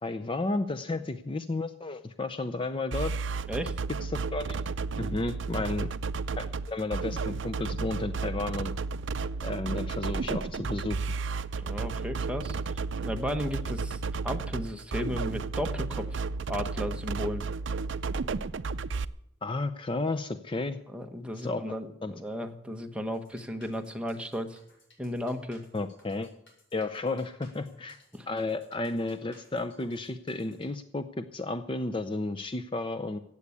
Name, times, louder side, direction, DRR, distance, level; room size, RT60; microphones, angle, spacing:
voice 1, 0.0-3.1 4.0-4.6 5.0-5.9 6.4-8.7 9.4-11.0 19.4-20.8 21.3-21.8 22.0-22.1 25.7-26.3 26.7-28.0 28.3-33.2, left 2 dB, 25° left, 10 dB, 0.5 m, -32 dB
sound 1, 2.9-19.0, right 4 dB, 65° right, 0.5 m, -33 dB
voice 2, 3.5-3.8 5.5-5.7 11.6-12.6 13.0-16.2 16.5-17.4 20.9-24.6 25.0-25.6 28.1-28.3, equal, 5° right, 4 dB, 1.0 m, -34 dB
sound 2, 23.1-30.7, left 2 dB, 70° left, 5.8 m, -60 dB
15.0 x 8.4 x 8.4 m, 0.81 s
head